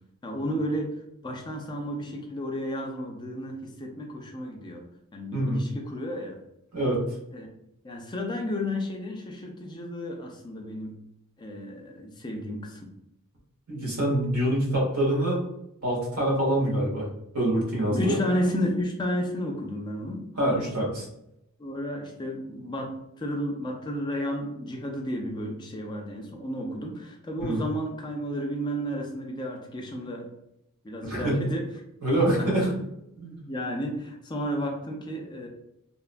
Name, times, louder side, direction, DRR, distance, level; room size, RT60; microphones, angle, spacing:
voice 1, 0.2-4.8 5.1-6.4 7.3-7.5 7.8-10.9 11.4-12.9 17.9-20.2 21.6-30.3 30.8-31.7 32.4-32.7 33.5-35.5, equal, 20° left, 1 dB, 0.3 m, -32 dB
voice 2, 13.7-15.4 15.8-17.1 17.3-18.2 20.4-21.1 27.4-27.6 31.0-31.4 32.0-32.7 33.2-33.4, right 1 dB, 85° right, -4 dB, 1.3 m, -25 dB
2.9 x 2.2 x 2.4 m, 0.81 s
head